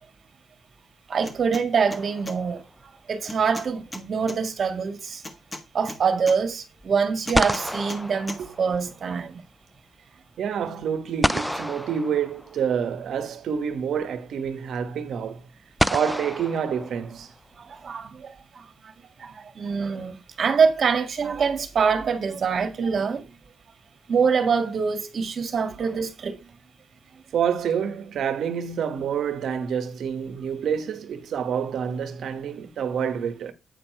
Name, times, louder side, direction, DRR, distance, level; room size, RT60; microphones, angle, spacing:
voice 1, 1.1-2.6 3.1-5.2 5.7-9.4 17.6-18.9 19.2-23.3 24.1-26.4, right 5 dB, 50° right, 1.7 m, -25 dB
sound 1, 1.2-1.6 1.9-2.4 3.3-4.4 5.2-6.4 7.3-8.0 8.3-8.4, left 1 dB, 20° left, 1.5 m, -37 dB
sound 2, 1.9-2.7 6.8-6.9 7.3-9.1 11.2-12.8 14.2-14.3 15.8-17.4, equal, ahead, 0.3 m, -29 dB
voice 2, 10.4-15.4 15.9-17.3 27.3-33.5, right 7 dB, 65° right, 1.3 m, -27 dB
8.6 x 4.4 x 4.5 m
cardioid pair, 90°, 0 cm